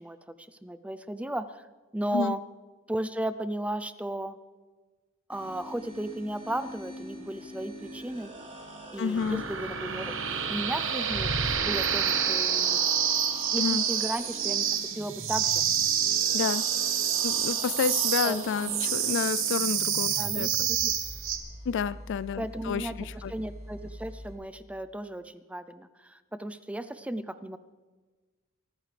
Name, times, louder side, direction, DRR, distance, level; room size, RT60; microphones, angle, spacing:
voice 1, 0.0-1.6 1.9-2.4 2.9-4.4 5.3-8.3 8.9-10.1 10.5-11.3 11.6-12.8 13.5-14.7 15.0-15.6 18.2-18.9 20.2-20.9 22.4-27.6, right 1 dB, 5° right, 0.5 m, -35 dB
sound 1, 5.3-24.3, right 1 dB, 30° right, 3.7 m, -44 dB
voice 2, 9.0-9.4 13.6-13.8 16.3-16.6 17.2-20.7 21.7-23.3, left 6 dB, 55° left, 0.3 m, -30 dB
sound 2, 9.2-21.4, right 8 dB, 65° right, 1.4 m, -28 dB
23.0 x 14.0 x 3.3 m
head